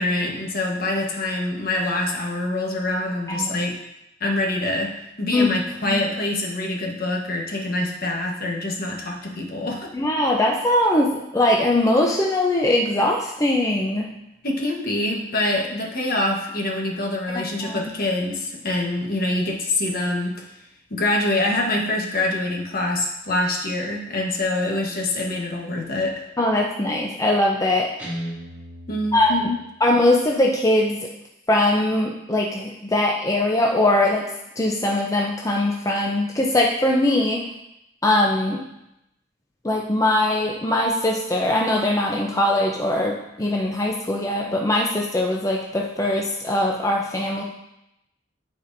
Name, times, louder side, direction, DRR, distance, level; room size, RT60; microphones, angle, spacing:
voice 1, 0.0-3.7 4.2-4.9 5.2-9.9 14.4-20.4 20.9-26.2 28.9-29.6, left 2 dB, 55° left, 0 dB, 1.2 m, -25 dB
voice 2, 9.9-14.1 17.3-17.8 26.4-27.9 29.1-29.5 29.8-31.1 31.5-34.3 34.6-37.5 38.0-38.6 39.6-47.4, left 1 dB, 20° left, -1 dB, 0.5 m, -21 dB
Guitar, 28.0-30.0, equal, 10° right, 2.1 m, -36 dB
12.0 x 4.4 x 2.6 m, 0.86 s
head